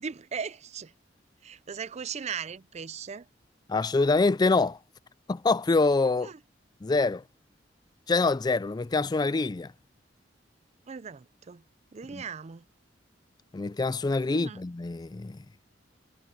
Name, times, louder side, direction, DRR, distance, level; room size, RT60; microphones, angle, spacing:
voice 1, 0.0-0.9 1.4-3.3 6.2-6.4 10.9-11.6 11.9-12.6 14.3-14.6, right 6 dB, 40° right, 0.4 m, -38 dB
voice 2, 3.7-4.8 5.3-6.3 6.8-7.2 8.1-9.7 12.1-12.2 13.5-15.4, left 3 dB, 20° left, 0.4 m, -25 dB
head